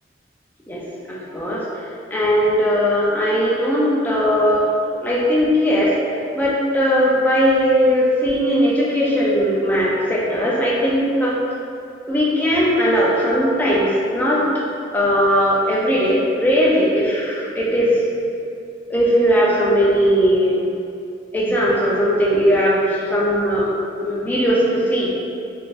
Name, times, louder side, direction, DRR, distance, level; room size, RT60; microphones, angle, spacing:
voice 1, 2.1-4.7 5.0-5.9 6.4-11.4 12.1-14.4 14.9-18.0 18.9-20.6 21.3-23.7 24.0-25.1, equal, 10° left, -7 dB, 0.5 m, -18 dB
3.7 x 2.6 x 2.5 m, 2.5 s
head